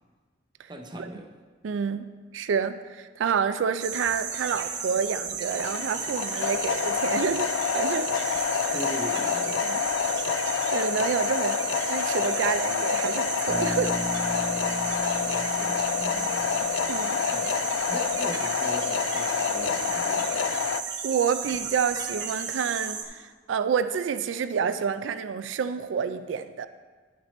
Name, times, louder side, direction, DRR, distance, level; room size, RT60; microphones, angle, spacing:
voice 1, 0.7-1.3 8.7-9.7 15.2-16.5 17.3-17.5 17.9-20.5, equal, 25° right, 4 dB, 0.7 m, -40 dB
voice 2, 1.6-2.1 2.3-8.1 8.6-8.7 9.6-9.8 10.7-11.6 11.9-14.0 16.9-17.2 21.0-26.7, right 6 dB, 80° right, 11 dB, 0.4 m, -28 dB
sound 1, 3.8-23.0, right 6 dB, 65° right, 1.0 m, -34 dB
sound 2, 5.5-20.8, left 7 dB, 85° left, 0.3 m, -28 dB
Bass guitar, 13.5-17.5, left 1 dB, 40° left, 1.6 m, -37 dB
11.0 x 6.0 x 4.2 m, 1.4 s
head